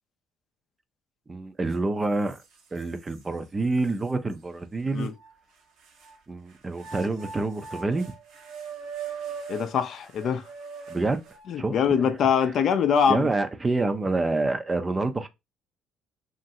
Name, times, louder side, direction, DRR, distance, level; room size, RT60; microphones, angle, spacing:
voice 1, 1.3-2.4 2.7-5.1 6.3-8.1 10.9-11.2 11.6-11.8 13.1-15.3, right 3 dB, 20° right, 0.4 m, -27 dB
sound 1, 1.7-1.8 2.3-3.2 3.8-3.9 5.0-6.2 6.7-11.6, right 6 dB, 75° right, 0.9 m, -41 dB
voice 2, 9.5-10.4 11.5-13.3, left 7 dB, 55° left, 0.4 m, -23 dB
2.9 x 2.5 x 2.7 m
cardioid pair, 95°, 0 cm